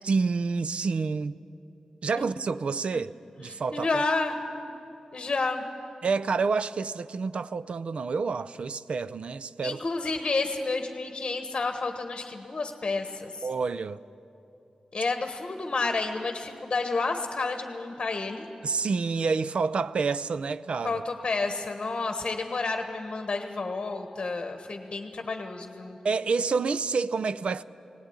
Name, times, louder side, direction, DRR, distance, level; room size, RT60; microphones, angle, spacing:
voice 1, 0.0-1.4 2.0-3.1 3.4-4.0 6.0-9.8 13.4-14.0 18.6-20.9 26.0-27.6, right 4 dB, 65° right, 0.5 m, -28 dB
voice 2, 3.4-4.6 5.1-5.6 9.6-13.5 14.9-18.5 20.8-26.0, left 3 dB, 40° left, 1.3 m, -30 dB
18.5 x 18.0 x 9.6 m
wide cardioid pair, 120°, 2 cm